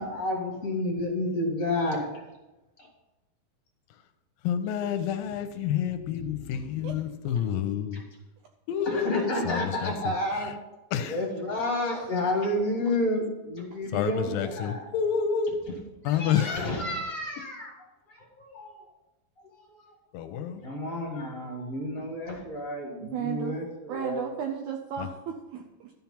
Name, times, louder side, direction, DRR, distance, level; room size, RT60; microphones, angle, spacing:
voice 1, 0.0-2.2 2.8-2.9 6.2-7.0 8.8-10.5 11.0-14.8 15.7-15.8 16.0-17.8 18.1-18.8 19.4-20.0 20.6-24.3, left 1 dB, 35° left, 1.4 m, -31 dB
voice 2, 4.4-8.0 8.7-10.1 10.4-10.5 10.9-11.2 13.9-15.5 16.0-16.8 20.1-20.6 25.0-25.1, left 8 dB, 90° left, 2.4 m, -29 dB
voice 3, 23.0-23.6 23.9-25.9, right 8 dB, 80° right, 1.7 m, -34 dB
12.0 x 5.9 x 5.6 m
omnidirectional pair, 4.1 m